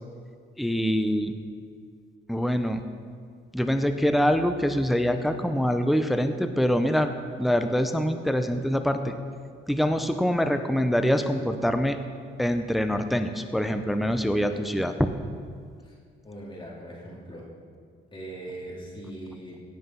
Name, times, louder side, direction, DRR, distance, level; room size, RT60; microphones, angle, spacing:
voice 1, 0.6-1.3 2.3-2.8 3.5-7.1 7.4-9.1 9.7-12.0 12.4-15.1, equal, ahead, 8 dB, 0.6 m, -24 dB
voice 2, 16.2-17.5 18.1-19.6, right 1 dB, 25° left, -4 dB, 2.8 m, -40 dB
17.0 x 5.9 x 5.7 m, 2.1 s
cardioid pair, 90°, 20 cm